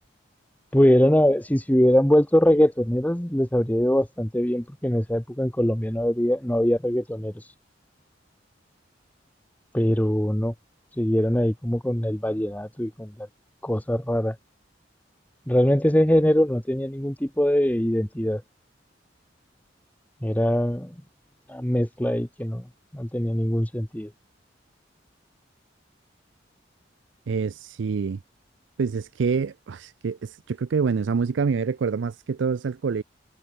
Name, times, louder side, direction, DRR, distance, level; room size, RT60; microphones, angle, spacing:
voice 1, 0.7-7.5 9.7-10.5 11.0-13.3 13.6-14.4 15.5-18.4 20.2-20.9 21.5-22.7 22.9-24.1, equal, 10° left, 1.1 m, -22 dB
voice 2, 27.3-28.2 28.8-33.0, right 5 dB, 75° right, 0.4 m, -26 dB
head